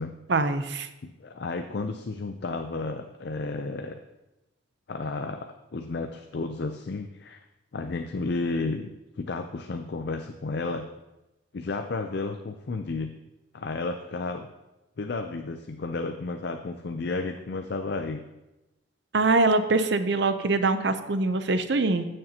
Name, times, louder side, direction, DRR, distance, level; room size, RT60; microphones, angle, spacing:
voice 1, 0.3-0.9 19.1-22.1, right 3 dB, 60° right, 10 dB, 0.6 m, -23 dB
voice 2, 1.0-4.0 4.9-7.4 7.7-8.9 9.2-10.9 11.5-13.2 13.5-14.5 15.0-18.2, left 3 dB, 55° left, 5 dB, 0.5 m, -32 dB
15.5 x 6.6 x 2.8 m, 1.0 s
head